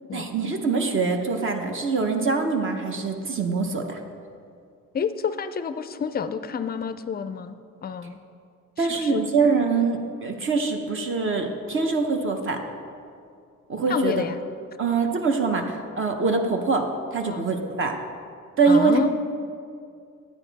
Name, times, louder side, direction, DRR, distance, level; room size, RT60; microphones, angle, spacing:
voice 1, 0.1-4.0 8.8-12.6 13.7-14.1 14.8-18.0 18.6-18.9, right 4 dB, 40° right, 4 dB, 0.8 m, -24 dB
voice 2, 4.9-8.2 8.8-9.3 13.9-14.4 17.3-17.4 18.7-19.1, left 6 dB, 30° left, 11 dB, 0.4 m, -29 dB
12.0 x 9.1 x 4.0 m, 2.4 s
cardioid pair, 165°, 31 cm